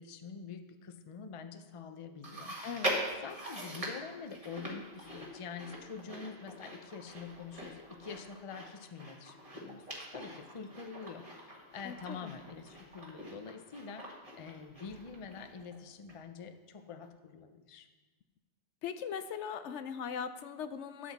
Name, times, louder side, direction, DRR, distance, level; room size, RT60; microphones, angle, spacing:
voice 1, 0.0-2.6 3.2-9.8 10.1-17.9, left 5 dB, 40° left, 8 dB, 0.5 m, -46 dB
Chewing mastication, 2.2-15.8 16.1-16.2 17.0-17.1, right 1 dB, 30° right, 1.7 m, -42 dB
voice 2, 2.6-3.0 11.8-12.3 18.8-21.1, left 7 dB, 75° left, 11 dB, 0.9 m, -40 dB
12.0 x 7.7 x 4.1 m, 1.3 s
omnidirectional pair, 1.2 m